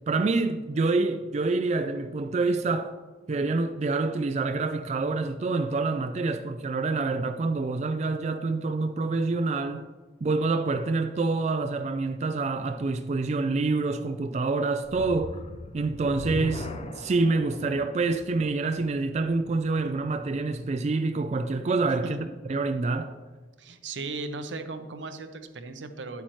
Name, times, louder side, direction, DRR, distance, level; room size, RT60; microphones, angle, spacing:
voice 1, 0.1-2.9 3.3-9.9 10.2-15.4 15.7-22.2 22.5-23.2, right 3 dB, 35° right, 0.3 m, -27 dB
sound 1, 14.8-20.1, left 1 dB, 30° left, 0.5 m, -39 dB
voice 2, 23.6-26.2, right 3 dB, 80° right, 0.8 m, -36 dB
10.5 x 8.3 x 3.1 m
head